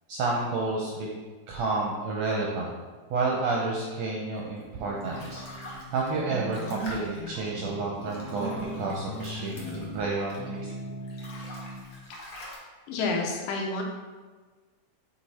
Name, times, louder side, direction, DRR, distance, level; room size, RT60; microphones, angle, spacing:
voice 1, 0.1-1.1 1.5-2.7 3.1-10.7, right 3 dB, 75° right, -2 dB, 1.6 m, -30 dB
sound 1, 4.6-10.7 11.0-12.6, left 1 dB, 60° left, 1.5 m, -45 dB
sound 2, 4.7-11.8, right 1 dB, 50° right, 1.1 m, -39 dB
voice 2, 12.9-13.8, left 3 dB, 85° left, 1 dB, 2.5 m, -29 dB
7.7 x 3.2 x 4.1 m, 1.4 s
omnidirectional pair, 3.8 m